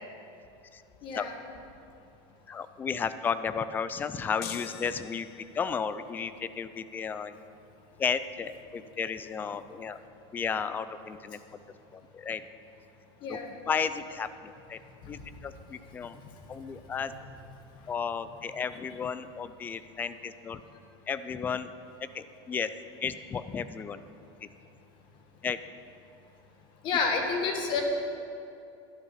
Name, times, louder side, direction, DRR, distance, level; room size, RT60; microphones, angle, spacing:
voice 1, 1.0-1.3 13.2-13.5 15.0-15.1 26.8-27.8, left 5 dB, 35° left, 3 dB, 1.5 m, -29 dB
voice 2, 2.5-5.3 5.5-7.4 8.0-10.0 10.3-11.4 11.9-12.4 13.3-13.4 13.7-14.8 15.1-16.2 16.5-17.1 17.9-20.6 21.1-21.7 22.1-22.7 23.0-24.0 24.4-24.5 25.4-25.6, left 6 dB, 15° left, 13 dB, 0.3 m, -33 dB
sound 1, 4.4-5.7, left 11 dB, 75° left, 0.7 m, -43 dB
12.0 x 12.0 x 5.8 m, 2.7 s
supercardioid pair, 170°, 14 cm